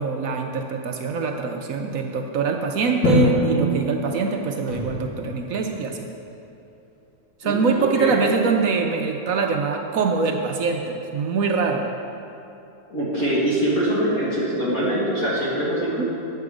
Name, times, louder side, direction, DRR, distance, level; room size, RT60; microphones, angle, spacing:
voice 1, 0.0-6.1 7.4-11.9 16.0-16.1, right 4 dB, 65° right, 3 dB, 0.9 m, -24 dB
Drum, 3.0-5.0, equal, 80° left, 2.4 m, -23 dB
sound 1, 4.7-7.2, equal, 35° left, 1.7 m, -38 dB
voice 2, 7.4-8.2 12.9-16.0, right 1 dB, 55° left, -7 dB, 2.1 m, -23 dB
9.5 x 7.6 x 4.9 m, 2.8 s
omnidirectional pair, 1.9 m